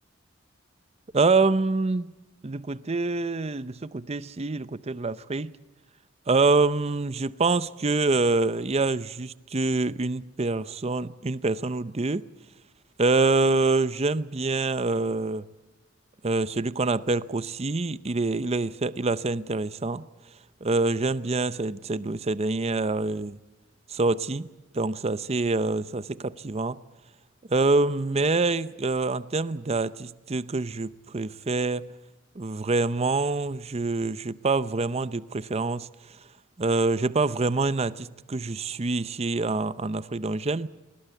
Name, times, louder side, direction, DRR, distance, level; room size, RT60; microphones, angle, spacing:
voice 1, 1.1-2.1 2.4-5.6 6.3-12.2 13.0-15.4 16.2-20.1 20.6-23.4 23.9-24.5 24.7-26.8 27.5-31.9 32.4-35.9 36.6-40.7, right 3 dB, 35° right, 0.6 m, -26 dB
21.0 x 20.5 x 7.9 m
head